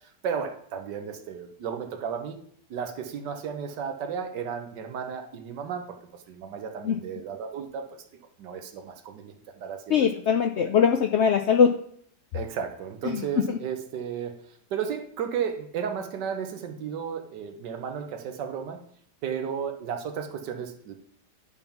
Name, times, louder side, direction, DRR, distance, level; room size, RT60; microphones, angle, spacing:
voice 1, 0.0-2.4 2.7-8.0 8.4-10.1 12.3-18.9 19.2-20.9, right 7 dB, 85° right, 5 dB, 1.5 m, -34 dB
voice 2, 9.9-11.7 13.1-13.2 13.5-13.6, left 7 dB, 85° left, 4 dB, 0.6 m, -21 dB
10.5 x 3.6 x 5.7 m, 0.64 s
omnidirectional pair, 1.8 m